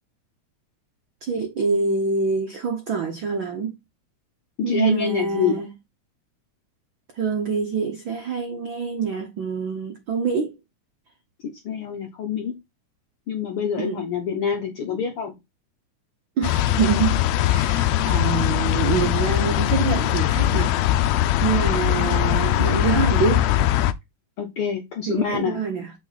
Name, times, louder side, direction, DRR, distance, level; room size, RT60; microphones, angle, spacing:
voice 1, 1.2-3.7 4.6-5.7 7.2-10.5 13.8-14.1 16.4-20.8 21.4-23.4 25.1-25.9, right 5 dB, 70° right, 1.1 m, -25 dB
voice 2, 4.6-5.6 11.4-12.5 13.3-15.3 24.4-25.6, left 7 dB, 70° left, 1.3 m, -26 dB
sound 1, 16.4-23.9, left 13 dB, 90° left, 1.5 m, -21 dB
8.1 x 4.7 x 4.1 m
omnidirectional pair, 3.7 m